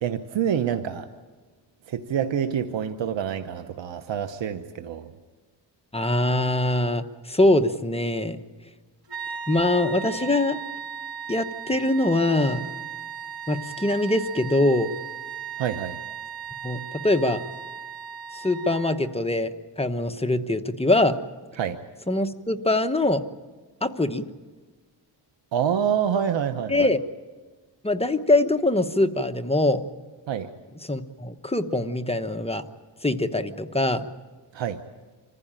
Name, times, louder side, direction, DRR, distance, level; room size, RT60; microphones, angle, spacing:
voice 1, 0.0-1.1 1.9-5.1 15.6-16.0 21.6-21.8 25.5-26.9 30.3-30.5 34.5-34.8, right 8 dB, 85° right, 8 dB, 1.0 m, -27 dB
voice 2, 5.9-8.4 9.5-10.6 11.3-12.6 13.5-14.9 16.6-17.4 18.3-21.2 22.1-23.2 23.8-24.2 26.7-27.0 27.8-29.8 30.8-32.6 33.0-34.1, left 2 dB, 15° left, 7 dB, 1.1 m, -23 dB
sound 1, 9.1-19.1, right 7 dB, 55° right, 2.3 m, -37 dB
26.0 x 15.0 x 9.0 m, 1.3 s
cardioid pair, 85°, 43 cm